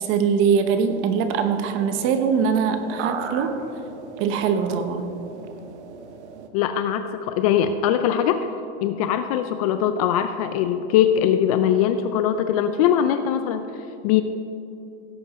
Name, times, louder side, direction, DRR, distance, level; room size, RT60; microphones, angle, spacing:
voice 1, 0.0-3.5 4.2-5.1, right 6 dB, 35° right, 8 dB, 1.0 m, -22 dB
sound 1, 0.7-6.5, right 6 dB, 75° right, 1.2 m, -37 dB
voice 2, 6.5-8.5 8.8-13.7 14.0-14.2, left 9 dB, 35° left, 9 dB, 0.4 m, -21 dB
16.5 x 7.5 x 4.2 m, 2.7 s
supercardioid pair, 140°, 35 cm